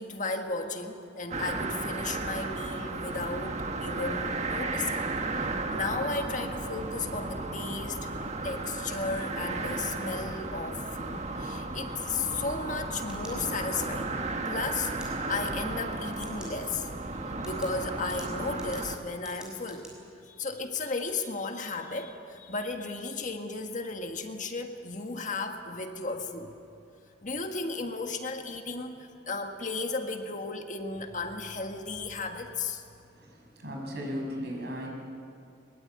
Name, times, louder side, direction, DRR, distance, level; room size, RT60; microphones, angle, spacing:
voice 1, 0.0-5.0 5.7-8.1 8.4-14.1 14.4-16.9 17.4-19.9 20.3-26.6 27.2-32.8, left 3 dB, 45° left, 4 dB, 1.7 m, -34 dB
sound 1, 1.3-19.0, right 3 dB, 35° right, 1.5 m, -34 dB
sound 2, 13.0-13.9 14.8-15.1 16.1-16.5 16.9-17.0 17.4-19.9, equal, 5° right, 6.0 m, -50 dB
voice 2, 33.1-34.9, equal, 60° right, 0 dB, 6.4 m, -36 dB
22.0 x 22.0 x 8.9 m, 2.5 s
head